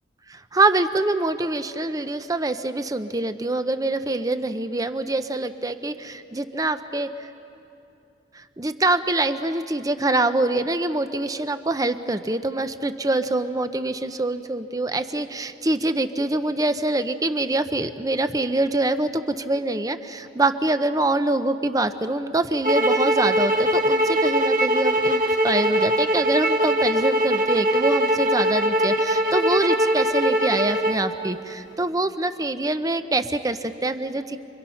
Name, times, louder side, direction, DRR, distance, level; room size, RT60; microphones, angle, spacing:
voice 1, 0.3-7.3 8.3-34.4, right 2 dB, 20° right, 10 dB, 0.7 m, -25 dB
sound 1, 22.6-31.0, equal, 40° right, 1.6 m, -21 dB
30.0 x 24.0 x 5.7 m, 2.8 s
head